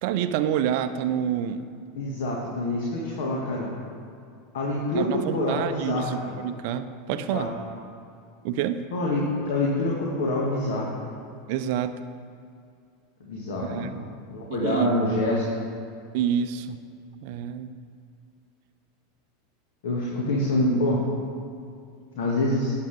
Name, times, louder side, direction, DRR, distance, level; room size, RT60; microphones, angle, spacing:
voice 1, 0.0-1.7 4.9-7.5 8.4-8.9 11.5-12.0 13.6-13.9 14.5-14.9 16.1-16.8 17.2-17.7, right 9 dB, 50° right, 11 dB, 0.6 m, -28 dB
voice 2, 1.9-3.7 4.5-6.2 7.1-7.5 8.9-10.9 13.2-13.9 14.3-15.4 19.8-21.0 22.2-22.7, left 1 dB, 60° left, -3 dB, 1.8 m, -26 dB
18.0 x 8.3 x 3.5 m, 2.4 s
figure-of-eight pair, 85°, 0 cm